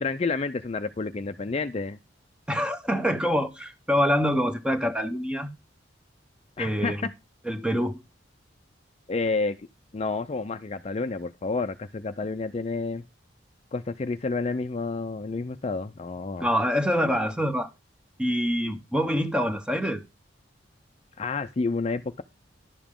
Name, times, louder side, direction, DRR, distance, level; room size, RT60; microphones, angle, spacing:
voice 1, 0.0-2.0 6.6-6.9 9.1-9.6 9.9-13.0 13.7-16.5 21.2-22.2, left 3 dB, 35° left, 0.4 m, -29 dB
voice 2, 2.5-5.5 6.6-7.1 7.4-8.0 16.4-17.7 18.2-20.0, equal, 5° right, 0.8 m, -25 dB
11.0 x 7.0 x 3.6 m
head